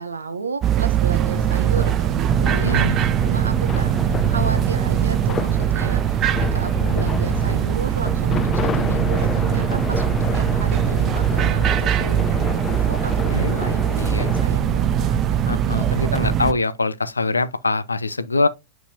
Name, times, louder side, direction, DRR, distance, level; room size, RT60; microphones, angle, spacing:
voice 1, 0.0-4.0 4.3-15.9, right 4 dB, 75° right, 0.9 m, -33 dB
sound 1, 0.6-16.5, right 9 dB, 30° right, 0.5 m, -21 dB
sound 2, 1.2-14.4, left 7 dB, 25° left, 0.6 m, -31 dB
voice 2, 2.6-3.0 13.3-13.6 14.0-14.3 15.5-18.5, left 3 dB, 80° left, 0.5 m, -23 dB
8.4 x 4.6 x 2.7 m
figure-of-eight pair, 90°, 0 cm